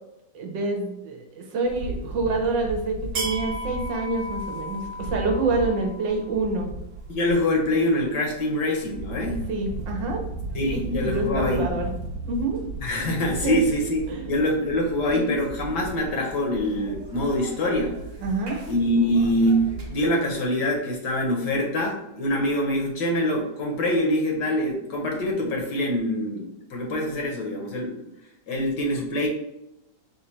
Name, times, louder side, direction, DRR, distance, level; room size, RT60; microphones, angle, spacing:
voice 1, 0.3-6.7 9.5-10.2 10.6-11.9 12.2-12.6 13.4-13.6 14.1-14.2 15.1-15.3 18.2-18.6, right 3 dB, 70° right, 2 dB, 1.3 m, -27 dB
sound 1, 1.6-20.1, right 2 dB, 55° right, 0.9 m, -35 dB
voice 2, 7.1-9.4 10.5-11.7 12.8-14.0 14.3-18.0 18.7-28.0 28.5-29.3, left 1 dB, 65° left, 0 dB, 1.3 m, -24 dB
4.1 x 2.6 x 4.2 m, 0.86 s
omnidirectional pair, 2.2 m